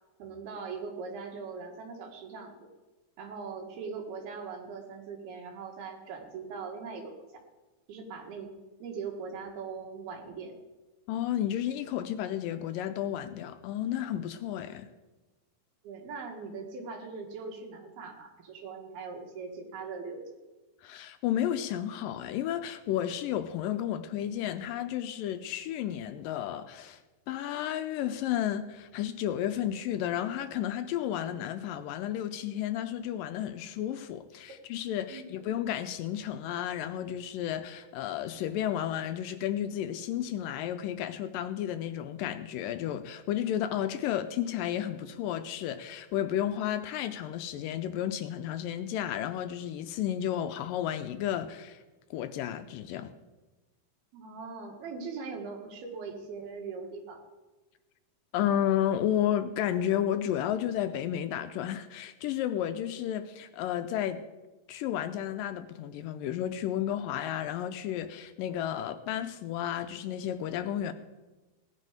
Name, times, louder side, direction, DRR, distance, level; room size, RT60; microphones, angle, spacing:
voice 1, 0.2-2.7 3.2-7.1 7.9-8.5 8.8-10.5 15.8-20.4 35.1-35.3 54.1-57.2, right 5 dB, 85° right, 3.6 m, -40 dB
voice 2, 11.1-14.9 20.8-27.0 27.3-51.8 52.1-53.1 58.3-64.3 64.7-70.9, left 11 dB, 80° left, 2.1 m, -32 dB
17.5 x 11.0 x 5.0 m
omnidirectional pair, 4.3 m